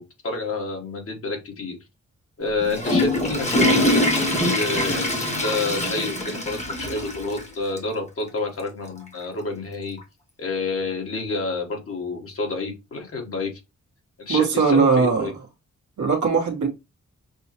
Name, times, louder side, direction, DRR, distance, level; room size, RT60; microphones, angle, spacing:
voice 1, 0.0-1.8 2.4-10.0 10.4-13.5 14.2-15.3, left 3 dB, 50° left, 1.2 m, -29 dB
Water / Toilet flush, 2.5-7.5 7.8-7.9 8.6-8.7 10.0-10.1, left 1 dB, 25° left, 1.0 m, -23 dB
voice 2, 14.3-15.3 16.0-16.7, right 5 dB, 75° right, 1.1 m, -19 dB
6.1 x 2.1 x 2.9 m
wide cardioid pair, 150°, 29 cm